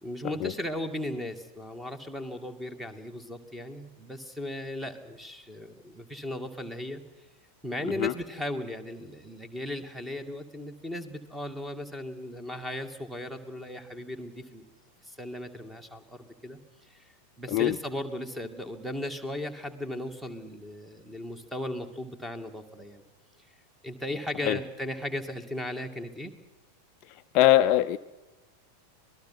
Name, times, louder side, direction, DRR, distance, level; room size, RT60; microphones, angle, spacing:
voice 1, 0.0-7.0 7.6-14.7 15.0-16.6 16.9-17.1 17.4-23.0 23.8-26.3, left 1 dB, 5° right, 10 dB, 2.4 m, -36 dB
voice 2, 27.3-28.0, left 14 dB, 40° left, 10 dB, 0.6 m, -21 dB
26.5 x 19.5 x 6.0 m, 1.0 s
figure-of-eight pair, 90°, 0 cm